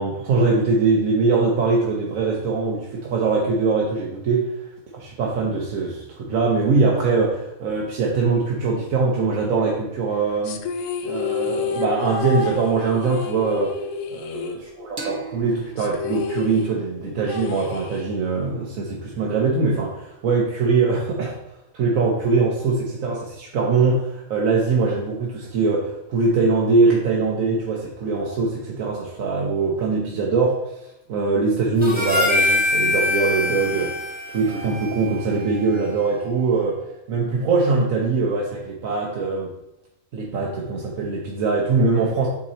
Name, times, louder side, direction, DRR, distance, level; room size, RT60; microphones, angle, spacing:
voice 1, 0.0-4.4 4.9-10.6 11.0-13.7 14.1-21.4 21.7-30.6 31.1-36.8 37.1-39.5 40.1-42.3, right 4 dB, 80° right, -2 dB, 1.2 m, -22 dB
sound 1, 10.4-15.1 15.4-15.5 15.8-18.4, left 6 dB, 70° left, 0.9 m, -30 dB
sound 2, 15.0-18.3, right 5 dB, 45° right, 0.9 m, -40 dB
Harmonica, 31.8-36.3, left 2 dB, 5° right, 1.0 m, -24 dB
8.2 x 2.9 x 4.1 m, 0.90 s
omnidirectional pair, 1.4 m